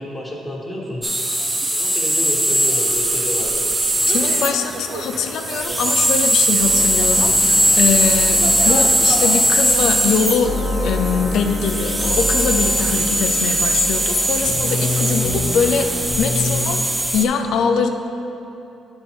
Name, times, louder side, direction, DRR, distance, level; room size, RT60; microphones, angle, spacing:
voice 1, 0.0-1.4 1.7-3.6, equal, 15° left, -2 dB, 1.3 m, -30 dB
sound 1, 1.0-17.2, right 1 dB, 15° right, 0.5 m, -20 dB
sound 2, 3.9-10.0, right 3 dB, 80° right, 0.6 m, -33 dB
voice 2, 4.1-10.5 10.8-16.8 17.1-17.9, left 6 dB, 75° left, 4 dB, 0.4 m, -22 dB
sound 3, 6.6-16.6, left 2 dB, 45° left, 1.6 m, -27 dB
9.4 x 4.3 x 4.5 m, 2.8 s
cardioid pair, 90°, 0 cm